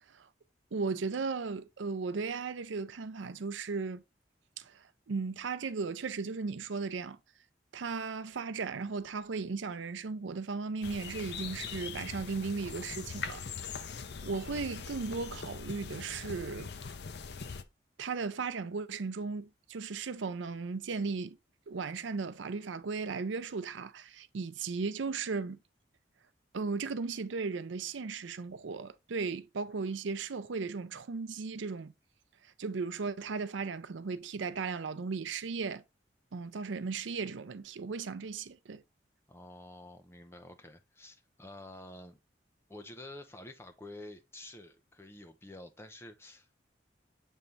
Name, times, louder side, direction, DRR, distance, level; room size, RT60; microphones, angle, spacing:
voice 1, 0.7-4.0 4.6-7.2 7.7-13.8 14.2-16.7 18.0-21.4 21.7-25.6 26.5-31.9 32.6-35.8 36.3-38.8, right 4 dB, 85° right, 0.5 m, -36 dB
sound 1, 10.8-17.6, left 5 dB, 65° left, 0.6 m, -42 dB
voice 2, 39.3-42.2 42.7-46.6, left 1 dB, 15° left, 0.7 m, -49 dB
7.2 x 3.3 x 3.9 m
head